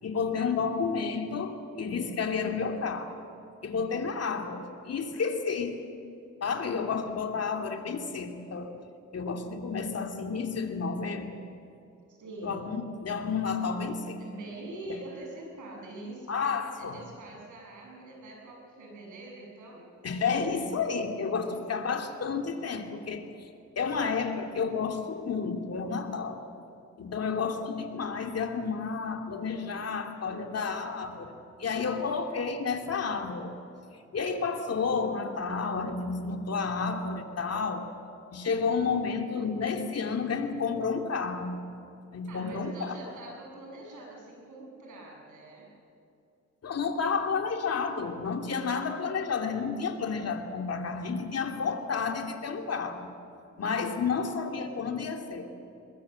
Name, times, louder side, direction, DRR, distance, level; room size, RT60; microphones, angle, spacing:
voice 1, 0.0-3.2 3.6-5.8 6.4-8.8 9.1-11.4 12.4-14.2 14.9-15.0 16.3-17.0 20.0-23.3 23.8-26.4 27.0-31.3 31.6-33.5 33.9-37.9 38.3-41.6 42.1-42.9 46.6-53.1 53.6-55.5, left 5 dB, 55° left, 4 dB, 2.7 m, -31 dB
voice 2, 12.1-12.7 14.2-19.9 21.3-21.6 42.3-45.7, right 2 dB, 85° right, -1 dB, 7.5 m, -44 dB
22.5 x 22.0 x 7.7 m, 2.7 s
cardioid pair, 100°, 29 cm